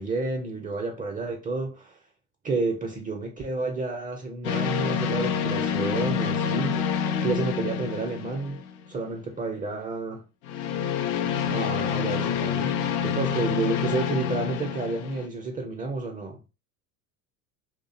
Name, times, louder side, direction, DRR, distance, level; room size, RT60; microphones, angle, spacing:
voice 1, 0.0-2.0 2.4-8.6 8.9-10.2 11.5-12.7 13.0-16.5, right 3 dB, 20° right, 0.4 m, -30 dB
sound 1, 4.4-8.9 10.4-15.3, left 7 dB, 85° left, 0.5 m, -27 dB
2.4 x 2.0 x 2.7 m
supercardioid pair, 90°, 41 cm